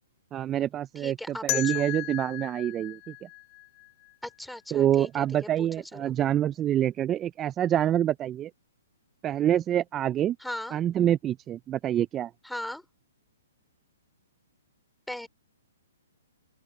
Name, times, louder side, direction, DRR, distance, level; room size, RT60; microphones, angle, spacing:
voice 1, 0.3-3.3 4.7-8.5 9.2-10.4 10.7-12.3, right 11 dB, 20° right, 0.4 m, -26 dB
voice 2, 1.0-1.9 4.2-5.3 5.6-6.2 10.4-10.8 12.4-12.8 15.1-15.3, left 1 dB, ahead, 4.6 m, -38 dB
sound 1, 1.5-4.3, left 25 dB, 30° left, 3.7 m, -35 dB
open air
hypercardioid pair, 145°, 0 cm